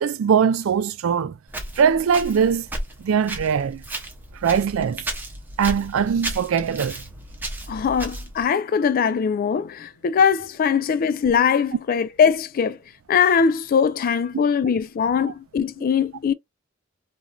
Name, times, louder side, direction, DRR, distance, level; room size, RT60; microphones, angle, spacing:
voice 1, 0.0-1.4 1.8-2.7 3.0-3.8 4.4-5.0 5.6-7.0, right 7 dB, 85° right, 0.4 m, -21 dB
Walk footsteps, 1.5-8.5, right 1 dB, 10° right, 0.7 m, -34 dB
voice 2, 7.7-12.8 13.1-16.3, left 6 dB, 45° left, 0.3 m, -21 dB
3.0 x 2.6 x 2.2 m
head